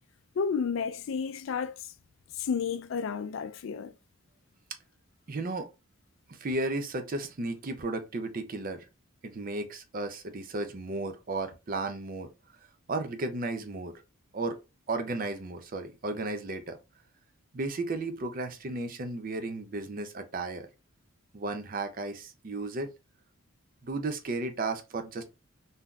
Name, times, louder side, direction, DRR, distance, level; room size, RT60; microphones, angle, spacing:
voice 1, 0.4-1.9 2.4-3.9, left 6 dB, 65° left, 0.3 m, -31 dB
voice 2, 5.3-5.7 6.3-8.9 9.2-12.3 12.9-13.9 14.3-14.6 14.9-16.8 17.5-20.7 21.3-22.9 23.8-25.2, right 2 dB, 40° right, 0.5 m, -34 dB
3.6 x 2.7 x 2.3 m
head